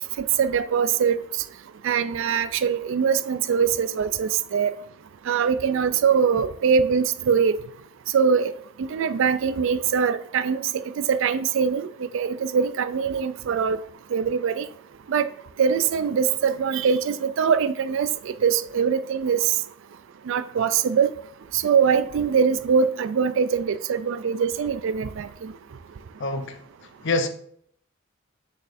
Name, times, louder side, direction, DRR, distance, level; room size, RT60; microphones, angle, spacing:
voice 1, 0.4-1.2 1.8-4.7 5.3-7.5 8.1-8.5 8.8-10.6 11.0-13.8 14.1-14.6 15.1-15.3 15.6-19.5 20.3-21.1 21.5-25.5, right 6 dB, 65° right, 0.4 m, -22 dB
voice 2, 26.2-27.3, left 2 dB, 60° left, 0.7 m, -27 dB
6.5 x 6.2 x 2.6 m
head